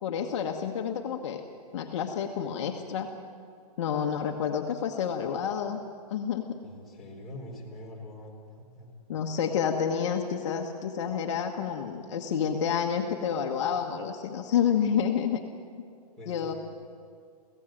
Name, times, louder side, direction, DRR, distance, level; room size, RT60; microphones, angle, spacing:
voice 1, 0.0-1.4 1.7-3.1 3.8-5.8 6.1-6.5 9.1-15.4 16.3-16.5, left 7 dB, 45° left, 3 dB, 1.4 m, -29 dB
voice 2, 6.6-8.4 8.7-8.9 16.2-16.5, left 1 dB, ahead, -7 dB, 4.2 m, -43 dB
23.5 x 16.5 x 7.7 m, 2.2 s
hypercardioid pair, 160°, 21 cm